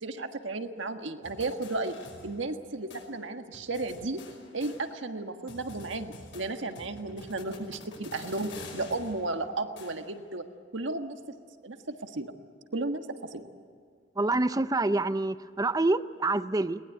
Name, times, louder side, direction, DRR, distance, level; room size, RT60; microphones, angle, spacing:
voice 1, 0.0-2.0 2.2-4.2 4.5-10.4 10.7-11.2 11.6-12.4 12.7-13.5, right 2 dB, 85° right, 6 dB, 1.6 m, -34 dB
sound 1, 1.2-2.6 2.9-3.0 3.5-5.2 5.5-10.3, left 2 dB, 80° left, 5.3 m, -48 dB
voice 2, 14.2-16.8, right 2 dB, 20° right, 13 dB, 0.6 m, -27 dB
22.0 x 19.5 x 9.3 m, 2.1 s
head